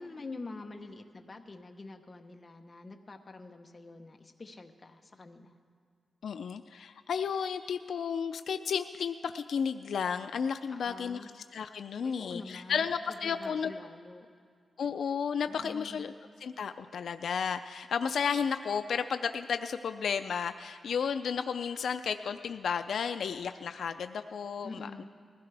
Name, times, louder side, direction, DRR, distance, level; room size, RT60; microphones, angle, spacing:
voice 1, 0.0-5.6 10.7-11.3 12.0-14.3 15.5-16.1 24.6-25.0, left 3 dB, 30° left, 4 dB, 0.9 m, -46 dB
voice 2, 6.2-13.7 14.8-16.1 16.4-25.0, left 6 dB, 80° left, 9 dB, 0.3 m, -33 dB
21.0 x 15.5 x 3.4 m, 2.2 s
wide cardioid pair, 145°, 0 cm